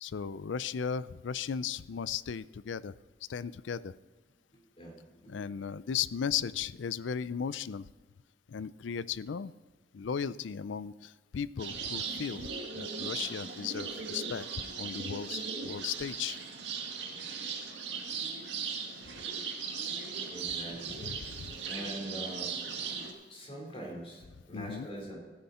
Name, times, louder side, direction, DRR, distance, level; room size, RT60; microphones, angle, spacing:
voice 1, 0.0-2.9 3.3-3.9 5.3-7.9 8.5-9.5 9.9-16.4 21.0-21.6 24.5-24.9, left 7 dB, 85° left, 18 dB, 0.4 m, -36 dB
sound 1, 11.6-23.1, right 5 dB, 70° right, 1.8 m, -38 dB
voice 2, 20.3-21.1 21.6-22.5 23.3-25.2, right 1 dB, 35° left, -1 dB, 4.0 m, -43 dB
16.0 x 9.8 x 4.3 m, 1.3 s
head